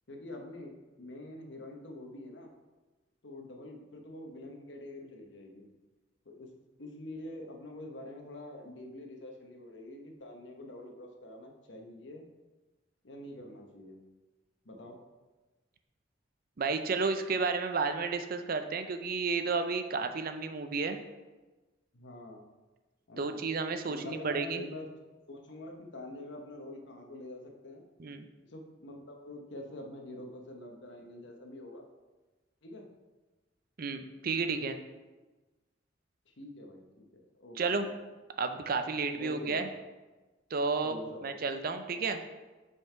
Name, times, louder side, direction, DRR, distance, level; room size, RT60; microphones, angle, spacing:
voice 1, 0.1-2.5 3.2-5.7 6.2-6.5 6.8-12.2 13.0-14.0 14.6-15.0 21.9-22.4 23.1-23.4 23.9-24.9 25.3-27.8 28.5-31.8 32.6-32.9 34.5-34.7 36.3-37.9 39.1-39.6 40.8-41.3, left 1 dB, 70° left, 2 dB, 1.1 m, -46 dB
voice 2, 16.6-21.0 23.2-24.6 28.0-28.2 33.8-34.8 37.6-37.8 38.4-39.7 40.5-41.0 41.2-42.2, right 4 dB, 50° right, 8 dB, 0.5 m, -32 dB
5.6 x 5.5 x 4.5 m, 1.2 s
head